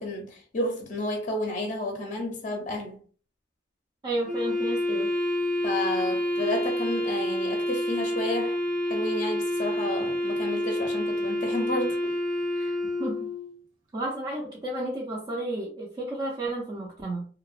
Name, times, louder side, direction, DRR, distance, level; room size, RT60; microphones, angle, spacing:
voice 1, 0.0-3.0 5.6-8.6 8.8-12.1 12.6-12.7, left 1 dB, 40° left, 0.5 m, -31 dB
voice 2, 4.0-5.1 13.0-13.3 13.9-17.3, right 1 dB, 25° right, 0.4 m, -32 dB
Wind instrument woodwind instrument, 4.3-13.5, left 1 dB, 80° right, 0.9 m, -28 dB
2.8 x 2.0 x 2.4 m
head